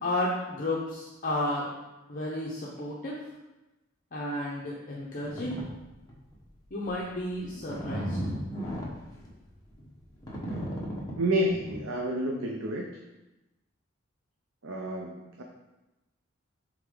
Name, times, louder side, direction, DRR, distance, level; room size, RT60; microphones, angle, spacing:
voice 1, 0.0-1.7 2.1-3.2 4.1-5.6 6.7-8.2, left 1 dB, 45° left, -4 dB, 0.9 m, -32 dB
sound 1, 5.2-5.6 6.1-6.4 6.8-11.8, equal, 20° left, 1.4 m, -35 dB
voice 2, 11.2-12.8 14.6-15.4, right 1 dB, 80° right, 0 dB, 0.7 m, -29 dB
8.6 x 3.6 x 3.9 m, 1.0 s
head